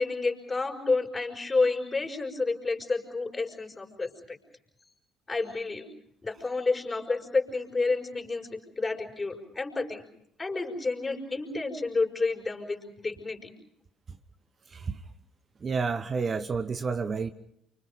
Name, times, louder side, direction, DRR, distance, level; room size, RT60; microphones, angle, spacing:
voice 1, 0.0-4.4 5.3-5.8 6.2-10.0 10.4-13.5, left 3 dB, 25° left, 3 dB, 5.6 m, -30 dB
voice 2, 14.7-15.0 15.6-17.3, right 5 dB, 35° right, 10 dB, 1.1 m, -30 dB
29.5 x 25.0 x 5.1 m, 0.73 s
figure-of-eight pair, 50°, 0 cm